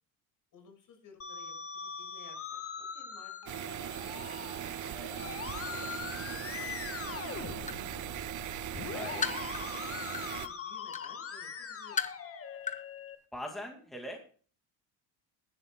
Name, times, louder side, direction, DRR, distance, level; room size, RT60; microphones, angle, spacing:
voice 1, 0.5-1.5 1.8-5.3 5.6-8.1 8.7-12.0, left 5 dB, 50° left, 5 dB, 6.6 m, -57 dB
Musical instrument, 1.2-13.2, left 7 dB, 30° left, 1.6 m, -42 dB
sound 1, 3.5-10.5, right 12 dB, 45° right, 1.0 m, -39 dB
sound 2, 6.6-6.7 7.2-7.9 8.4-10.4 10.9-11.1 11.6-12.3 12.6-12.8 13.1-13.2, left 6 dB, 15° left, 1.1 m, -36 dB
voice 2, 8.9-9.2 13.3-14.2, equal, ahead, 1 dB, 2.3 m, -41 dB
20.0 x 11.5 x 2.3 m, 0.41 s
cardioid pair, 140°, 43 cm